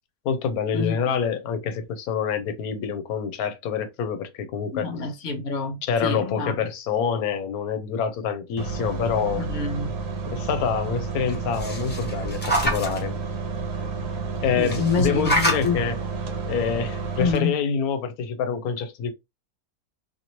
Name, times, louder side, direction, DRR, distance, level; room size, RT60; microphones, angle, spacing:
voice 1, 0.2-4.9 5.8-9.5 10.3-13.1 14.4-16.0 16.5-19.1, left 6 dB, 85° left, 1.1 m, -26 dB
voice 2, 4.7-6.5 9.4-9.9 14.6-15.3 15.6-15.8 17.2-17.5, left 5 dB, 65° left, 0.9 m, -27 dB
sound 1, 8.6-17.3, right 4 dB, 70° right, 1.0 m, -30 dB
sound 2, 11.3-13.0 14.6-15.7 16.9-17.0 17.3-17.4, equal, 10° left, 0.7 m, -26 dB
2.9 x 2.6 x 2.8 m
omnidirectional pair, 1.5 m